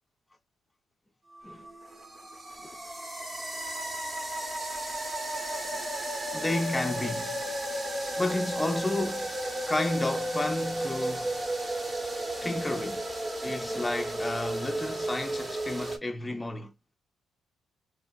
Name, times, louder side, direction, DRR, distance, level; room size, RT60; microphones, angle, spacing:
sound 1, 1.3-16.0, right 1 dB, 25° right, 0.7 m, -33 dB
voice 1, 6.3-7.5 8.2-9.3 9.7-11.3 12.4-13.0 13.4-16.7, left 2 dB, 15° left, 0.3 m, -31 dB
3.0 x 2.4 x 2.3 m
cardioid pair, 90°, 0 cm